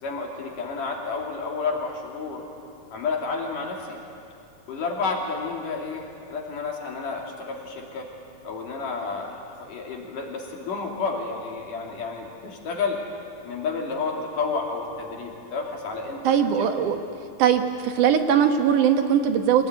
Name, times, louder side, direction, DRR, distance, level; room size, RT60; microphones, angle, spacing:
voice 1, 0.0-2.5 2.9-4.0 4.7-8.1 8.4-13.0 13.4-16.7, left 4 dB, 75° left, -1 dB, 4.4 m, -31 dB
voice 2, 16.2-17.0 17.4-19.7, right 8 dB, 70° right, 6 dB, 2.7 m, -20 dB
24.0 x 19.0 x 9.6 m, 2.6 s
omnidirectional pair, 3.8 m